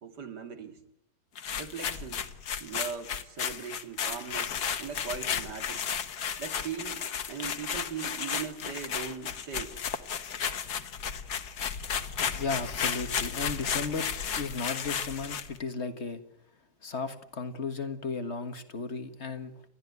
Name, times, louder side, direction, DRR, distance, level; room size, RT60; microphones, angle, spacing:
voice 1, 0.0-0.8 1.6-2.2 2.6-5.8 6.4-9.8, right 6 dB, 90° right, 7 dB, 2.8 m, -39 dB
sound 1, 1.4-15.6, left 7 dB, 70° left, 1.8 m, -33 dB
voice 2, 12.4-16.2 16.8-19.6, left 4 dB, 45° left, 9 dB, 1.7 m, -35 dB
30.0 x 13.0 x 9.5 m, 0.77 s
omnidirectional pair, 1.7 m